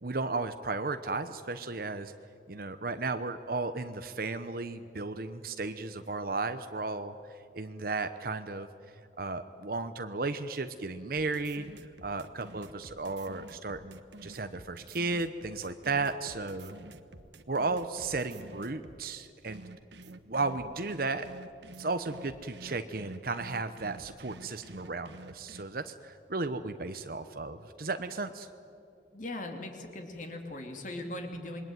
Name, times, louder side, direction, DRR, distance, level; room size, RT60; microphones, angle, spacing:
voice 1, 0.0-2.1 2.5-8.7 9.2-11.7 12.0-16.7 17.5-19.6 20.3-21.3 21.8-28.5, right 3 dB, 50° right, 9 dB, 0.9 m, -34 dB
sound 1, 11.1-19.0 19.5-25.6, right 2 dB, 70° right, 1.3 m, -49 dB
voice 2, 29.1-31.6, left 1 dB, 45° left, 3 dB, 3.0 m, -39 dB
27.5 x 22.0 x 9.3 m, 2.6 s
head